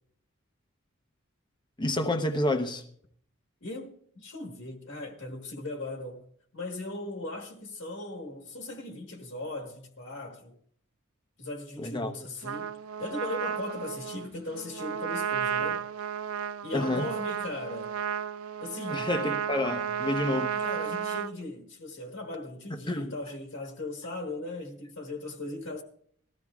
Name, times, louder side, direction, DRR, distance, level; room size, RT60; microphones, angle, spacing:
voice 1, 1.8-2.8 11.8-12.1 16.7-17.1 18.9-20.6 22.7-23.1, left 1 dB, 20° left, 0.8 m, -29 dB
voice 2, 3.6-6.2 6.5-10.6 11.4-12.7 13.0-15.9 16.6-17.9 18.6-19.1 20.6-25.8, left 2 dB, 60° left, 1.4 m, -38 dB
Trumpet, 12.4-21.3, right 8 dB, 85° right, 0.4 m, -33 dB
20.0 x 13.5 x 2.4 m
head